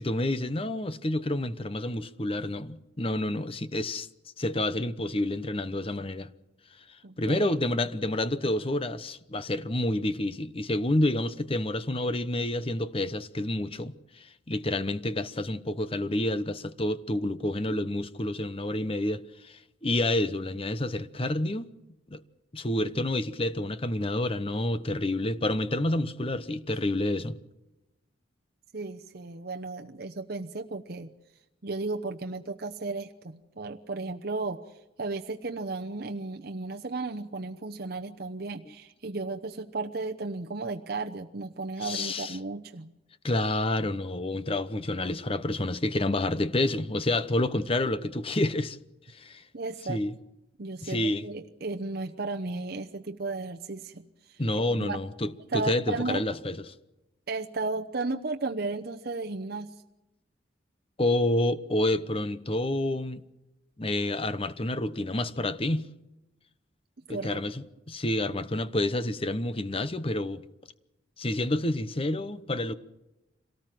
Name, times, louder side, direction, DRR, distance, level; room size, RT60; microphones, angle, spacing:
voice 1, 0.0-4.1 4.4-6.3 7.2-21.7 22.1-22.2 22.5-27.4 41.8-42.4 43.2-48.8 49.1-49.4 49.9-50.1 50.8-51.3 54.4-56.6 61.0-63.2 63.8-65.9 67.1-70.4 71.2-72.7, left 1 dB, 30° left, 0.9 m, -29 dB
voice 2, 7.0-7.6 28.7-31.1 31.6-34.6 35.0-42.9 49.5-50.0 50.6-54.4 54.7-55.0 55.5-56.2 57.3-59.8 67.1-67.4, right 3 dB, 50° right, 0.9 m, -34 dB
26.0 x 18.5 x 7.7 m
head